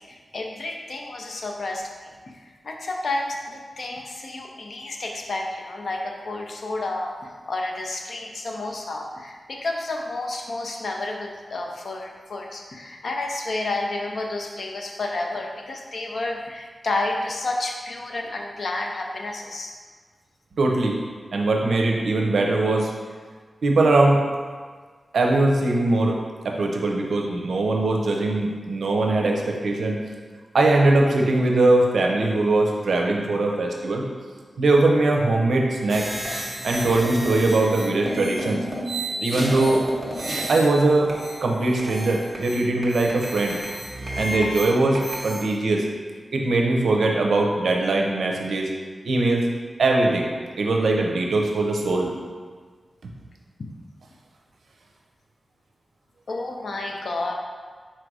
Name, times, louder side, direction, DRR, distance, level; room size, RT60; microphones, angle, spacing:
voice 1, 0.0-2.1 2.4-19.7 56.3-57.3, left 2 dB, 60° left, 1 dB, 0.5 m, -30 dB
voice 2, 20.6-21.0 21.3-22.9 23.6-24.2 25.1-30.0 30.5-34.0 34.6-36.1 36.6-38.7 39.2-39.8 40.5-41.1 41.4-43.6 44.2-45.9 46.3-48.7 49.0-49.5 49.8-52.1 53.0-53.1, right 2 dB, 85° right, 1 dB, 0.5 m, -21 dB
sound 1, 35.9-45.4, right 1 dB, 30° right, 0.9 m, -31 dB
4.3 x 2.5 x 4.6 m, 1.5 s
wide cardioid pair, 160°, 0 cm